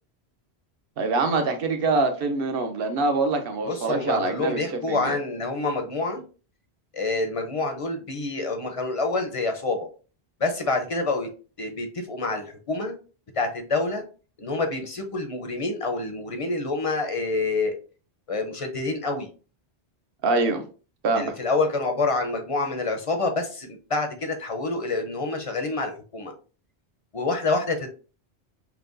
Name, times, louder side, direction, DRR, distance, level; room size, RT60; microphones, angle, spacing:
voice 1, 1.0-5.1 20.2-20.6 21.0-21.3, right 3 dB, 65° right, 0.9 m, -24 dB
voice 2, 3.6-6.2 6.9-9.9 10.4-11.3 11.6-12.9 13.4-14.0 14.4-17.8 18.3-19.3 21.1-26.3 27.1-27.9, left 3 dB, 40° left, 0.6 m, -27 dB
5.7 x 2.2 x 2.5 m
omnidirectional pair, 1.1 m